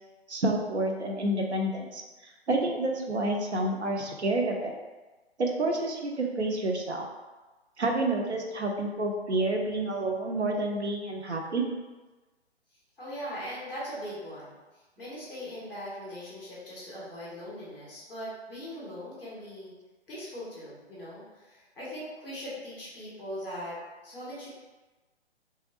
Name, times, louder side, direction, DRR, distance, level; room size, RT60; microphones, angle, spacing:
voice 1, 0.3-4.8 5.4-7.1 7.8-11.7, right 2 dB, 90° right, 1 dB, 0.6 m, -29 dB
voice 2, 13.0-14.6 15.0-19.7 20.1-23.8 24.0-24.5, equal, ahead, -10 dB, 0.3 m, -40 dB
3.0 x 2.5 x 2.9 m, 1.2 s
figure-of-eight pair, 130°, 33 cm